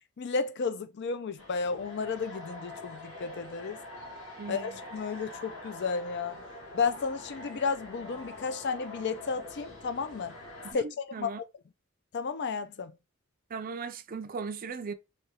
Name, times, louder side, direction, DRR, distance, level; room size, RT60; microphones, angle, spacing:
voice 1, 0.2-3.8 4.5-6.4 6.7-10.4 10.7-11.3 12.1-12.9, left 5 dB, 50° left, 0.4 m, -33 dB
sound 1, 1.4-10.7, left 2 dB, 70° left, 1.9 m, -45 dB
voice 2, 4.4-4.8 10.7-10.8 11.1-11.4 13.5-14.9, right 5 dB, 40° right, 0.4 m, -37 dB
3.8 x 3.3 x 2.8 m
head